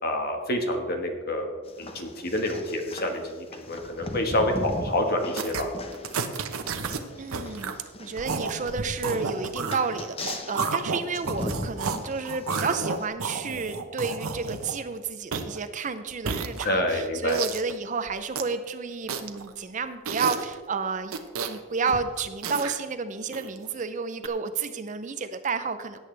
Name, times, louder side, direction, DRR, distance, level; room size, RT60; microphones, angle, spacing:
voice 1, 0.0-1.5 1.8-5.7 16.6-17.4, left 1 dB, 45° left, 3 dB, 1.5 m, -27 dB
sound 1, 1.7-13.1, left 1 dB, 25° left, 0.8 m, -39 dB
sound 2, 5.4-5.6 5.9-7.0 7.3-7.7 8.2-12.0 12.2-14.9 15.3-15.6 16.1-16.9 17.3-17.7 18.1-18.5 19.1-19.5 20.0-20.5 21.0-21.6 21.9-22.7 23.3-23.6 24.2-24.3, right 5 dB, 80° right, 0.9 m, -31 dB
voice 2, 7.2-7.7 8.0-21.1 21.4-26.0, right 4 dB, 35° right, 10 dB, 0.5 m, -31 dB
17.5 x 8.6 x 3.3 m, 1.5 s
head